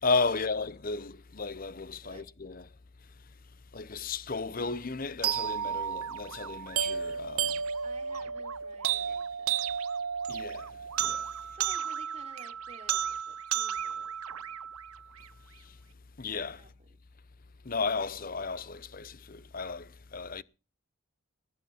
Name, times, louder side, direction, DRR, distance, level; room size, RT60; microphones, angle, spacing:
voice 1, 0.0-2.7 3.7-7.6 10.3-11.3 15.6-15.7 16.2-16.7 17.6-20.4, left 4 dB, 40° left, 0.7 m, -34 dB
sound 1, 5.2-15.3, right 8 dB, 90° right, 0.7 m, -33 dB
voice 2, 7.2-9.7 11.3-14.6 16.5-17.0, right 3 dB, 30° right, 3.7 m, -55 dB
20.0 x 8.8 x 5.7 m
head